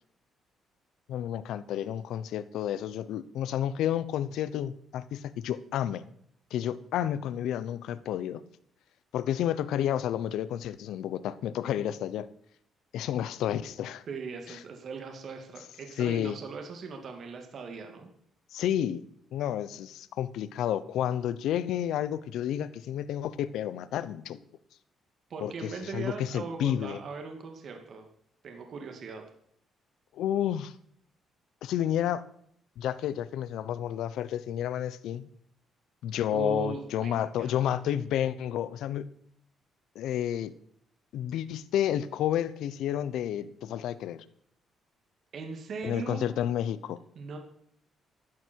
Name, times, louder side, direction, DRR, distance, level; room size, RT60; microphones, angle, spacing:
voice 1, 1.1-6.0 6.5-8.4 9.1-12.3 12.9-14.0 16.0-16.3 18.5-19.0 19.3-24.4 25.4-27.0 30.1-30.7 31.6-32.2 32.8-35.3 36.0-39.1 39.9-40.5 41.1-44.2 45.8-47.0, left 10 dB, 85° left, 16 dB, 0.8 m, -30 dB
voice 2, 14.1-18.1 25.3-28.1 28.4-29.2 36.3-37.6 45.3-46.4 47.1-47.4, right 4 dB, 60° right, 4 dB, 2.5 m, -39 dB
14.5 x 12.0 x 4.7 m, 0.68 s
cardioid pair, 90°, 0 cm